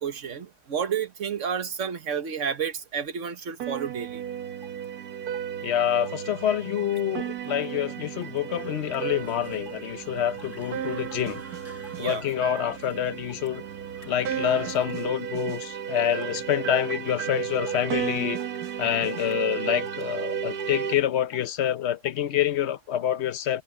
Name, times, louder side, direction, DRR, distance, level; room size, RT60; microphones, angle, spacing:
voice 1, 0.0-4.2 12.0-12.2 18.8-19.0, right 7 dB, 50° right, 1.6 m, -31 dB
sound 1, 3.6-20.9, right 9 dB, 75° right, 1.5 m, -34 dB
sound 2, 4.6-4.9 5.3-5.6 6.1-6.2 6.8-7.0 7.4-7.7 7.9-8.4 8.9-9.1 9.7-9.9 10.3-10.7 11.1-11.3 11.8-12.2 12.6-12.8 13.3-13.5 14.0-14.3 14.7-15.0 15.5-15.7 16.2-16.4 16.9-17.2 17.7-17.9 18.3-18.6 19.1-19.4 19.9-20.1 20.6-20.8 21.3-21.5 22.0-22.2, left 5 dB, 70° left, 2.9 m, -51 dB
voice 2, 5.6-11.4 12.0-13.6 14.0-18.4 18.8-23.6, left 10 dB, 55° left, 0.9 m, -27 dB
sound 3, 8.5-14.9, right 1 dB, 10° right, 6.5 m, -50 dB
omnidirectional pair, 1.7 m